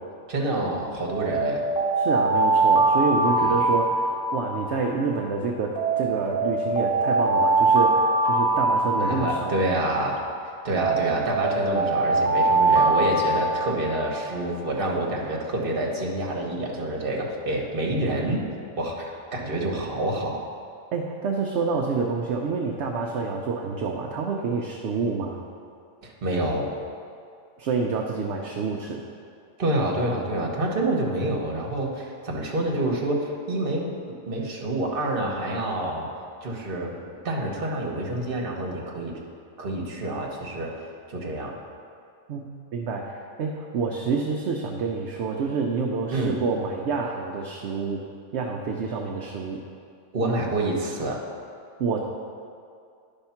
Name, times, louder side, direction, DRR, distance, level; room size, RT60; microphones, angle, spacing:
voice 1, 0.3-1.7 3.4-3.5 9.0-10.2 10.6-18.5 18.8-20.4 26.0-26.7 29.6-33.9 34.3-36.1 36.4-36.9 37.2-39.2 39.6-40.8 41.1-41.5 46.1-46.4 50.1-51.2, right 1 dB, 45° right, -1 dB, 1.2 m, -27 dB
Alarm, 1.1-5.2 5.8-10.2 10.8-14.6, right 3 dB, 10° right, 1.6 m, -23 dB
voice 2, 2.0-9.6 20.9-25.4 27.6-29.0 42.3-42.4 42.7-48.0 48.3-49.6 51.8-52.1, right 4 dB, 65° right, 0 dB, 0.8 m, -28 dB
10.5 x 3.6 x 5.7 m, 2.4 s
omnidirectional pair, 1.4 m